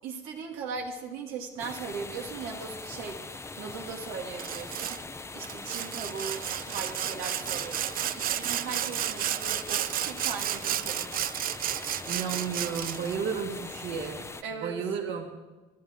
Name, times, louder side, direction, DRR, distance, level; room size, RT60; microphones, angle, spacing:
voice 1, 0.0-11.1 14.4-14.7, right 5 dB, 90° right, 0 dB, 2.8 m, -39 dB
sound 1, 1.6-14.4, left 3 dB, 10° left, 0.7 m, -41 dB
Sawing, 4.4-5.0 5.4-13.1, right 12 dB, 45° right, 0.4 m, -32 dB
voice 2, 12.0-14.2 14.6-15.3, right 6 dB, 65° right, 1 dB, 2.4 m, -32 dB
25.0 x 11.0 x 3.9 m, 1.2 s
cardioid pair, 125°, 21 cm